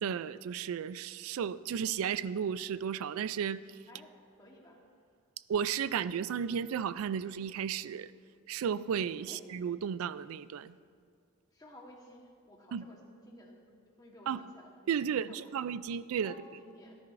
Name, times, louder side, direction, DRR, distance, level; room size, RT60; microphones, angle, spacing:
voice 1, 0.0-3.6 5.5-8.1 8.5-10.7 12.7-12.8 14.3-14.4 14.9-16.3, right 7 dB, 80° right, 0.3 m, -34 dB
voice 2, 3.9-4.8 9.3-9.4 11.5-15.4 16.2-17.0, left 1 dB, 15° left, 1.3 m, -54 dB
17.5 x 10.5 x 2.6 m
head